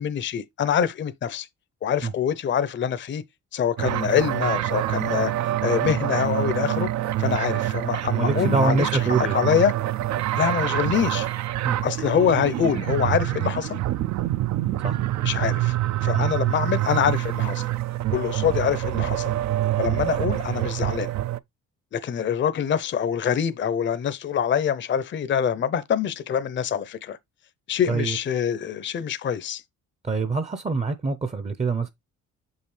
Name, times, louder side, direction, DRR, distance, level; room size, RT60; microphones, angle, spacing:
voice 1, 0.0-1.5 1.8-3.2 3.5-5.3 5.6-6.9 7.2-8.9 9.3-9.7 10.4-11.3 11.8-13.8 15.2-15.8 16.0-17.7 18.1-19.3 19.8-21.1 21.9-27.2 27.7-29.6, left 8 dB, 40° left, 0.6 m, -25 dB
sound 1, 3.8-21.4, right 14 dB, 65° right, 0.5 m, -26 dB
voice 2, 8.1-9.4 11.6-11.8 14.8-15.0 16.1-16.3 27.9-28.2 30.0-31.9, right 4 dB, 20° right, 0.6 m, -25 dB
6.5 x 5.5 x 3.2 m
cardioid pair, 90°, 30 cm